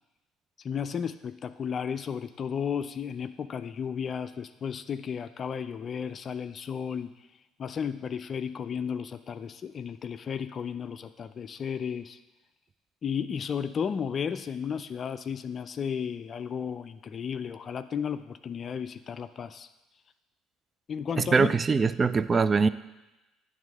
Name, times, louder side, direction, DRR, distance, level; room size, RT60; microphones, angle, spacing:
voice 1, 0.6-7.1 7.6-12.2 13.0-19.7 20.9-21.5, left 7 dB, 45° left, 11 dB, 0.3 m, -33 dB
voice 2, 21.2-22.7, right 5 dB, 30° right, 15 dB, 0.3 m, -23 dB
8.8 x 3.6 x 6.3 m, 1.0 s
hypercardioid pair, 60°, 0 cm